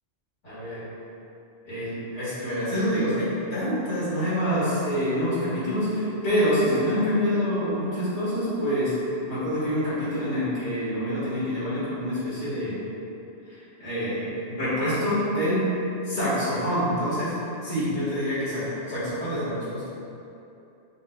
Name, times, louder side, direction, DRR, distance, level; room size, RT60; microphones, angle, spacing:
voice 1, 0.4-0.9 1.7-8.9 9.3-12.8 13.5-15.7 16.0-17.3 17.6-19.8, equal, 85° left, -11 dB, 2.1 m, -26 dB
5.3 x 2.2 x 3.8 m, 2.8 s
omnidirectional pair, 1.2 m